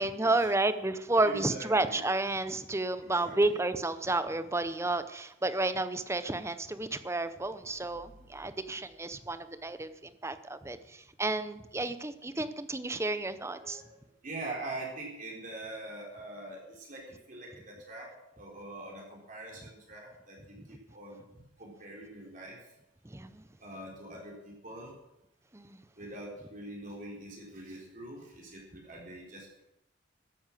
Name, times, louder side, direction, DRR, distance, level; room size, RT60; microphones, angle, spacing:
voice 1, 0.0-13.8 23.1-23.4 25.5-25.8, right 2 dB, 15° right, 12 dB, 0.7 m, -31 dB
voice 2, 1.1-2.0 3.0-3.6 13.5-21.3 21.6-22.6 23.6-24.9 26.0-29.6, right 2 dB, 40° right, -2 dB, 4.0 m, -44 dB
13.0 x 10.0 x 7.5 m, 0.87 s
head